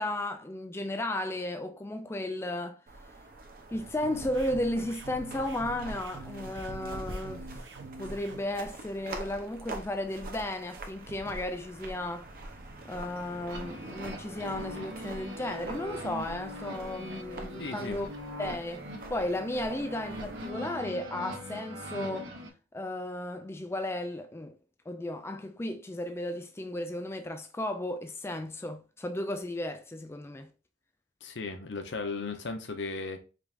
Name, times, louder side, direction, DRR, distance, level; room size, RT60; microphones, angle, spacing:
voice 1, 0.0-2.8 3.7-7.6 8.0-12.3 12.8-18.1 18.4-22.3 22.7-24.6 24.9-30.5, left 1 dB, 15° left, 0.4 m, -34 dB
sound 1, 2.9-20.5, right 2 dB, 55° right, 0.9 m, -44 dB
sound 2, 4.0-8.4, right 3 dB, 90° right, 0.8 m, -46 dB
sound 3, 13.5-22.5, equal, 70° right, 1.3 m, -41 dB
voice 2, 17.6-18.0 31.2-33.2, left 3 dB, 75° left, 0.8 m, -36 dB
5.1 x 3.5 x 2.5 m
head